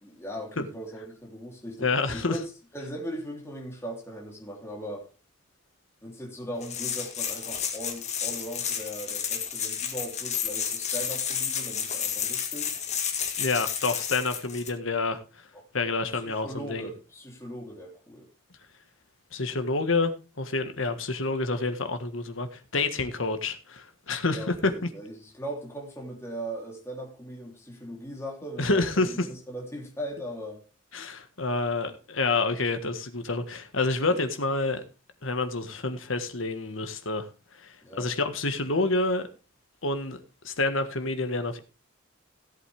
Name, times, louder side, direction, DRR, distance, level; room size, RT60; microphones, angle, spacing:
voice 1, 0.0-5.1 6.0-12.8 15.5-15.7 16.1-18.3 24.3-30.6 34.1-34.2 37.8-38.1, equal, 15° left, 3.3 m, -39 dB
voice 2, 1.8-2.4 13.4-15.5 15.7-16.9 19.3-20.1 20.4-24.7 28.6-29.1 30.9-34.8 35.2-37.3 37.6-39.3 39.8-40.2 40.4-41.6, left 3 dB, 75° left, 1.6 m, -28 dB
sound 1, 6.6-14.7, left 8 dB, 35° left, 1.8 m, -31 dB
16.5 x 8.2 x 3.5 m
head